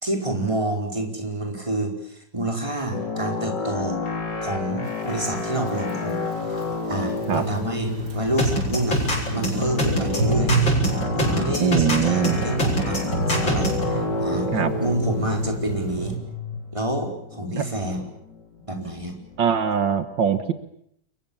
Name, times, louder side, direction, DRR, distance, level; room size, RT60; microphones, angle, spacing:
voice 1, 0.0-4.0 4.4-6.2 6.9-9.0 9.3-10.6 11.1-14.5 14.8-16.2 16.7-18.0 18.7-19.1, right 1 dB, 15° right, 3 dB, 4.9 m, -28 dB
sound 1, 2.9-19.4, left 4 dB, 65° left, 4.5 m, -31 dB
sound 2, 5.1-16.2, right 4 dB, 55° right, 4.5 m, -29 dB
sound 3, 8.4-13.8, equal, 85° left, 7.6 m, -24 dB
voice 2, 11.6-12.4 14.5-14.7 17.6-17.7 19.4-20.5, right 7 dB, 75° right, 11 dB, 2.1 m, -22 dB
29.5 x 23.5 x 7.2 m, 0.71 s
omnidirectional pair, 2.0 m